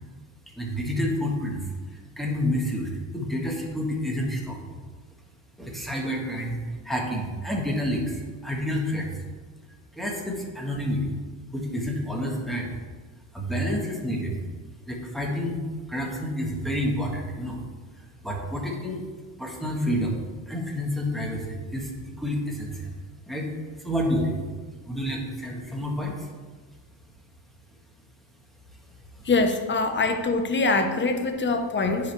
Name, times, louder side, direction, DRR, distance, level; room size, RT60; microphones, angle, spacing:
voice 1, 0.6-1.7 1.9-4.6 5.6-9.1 9.9-11.1 11.5-12.7 13.3-14.4 14.9-17.6 18.0-19.0 19.4-22.9 23.3-23.5 23.8-24.4 24.8-26.3 29.1-29.2, equal, ahead, -1 dB, 1.4 m, -29 dB
voice 2, 29.2-32.1, left 3 dB, 25° left, 6 dB, 0.8 m, -24 dB
10.0 x 5.1 x 3.3 m, 1.4 s
cardioid pair, 110°, 48 cm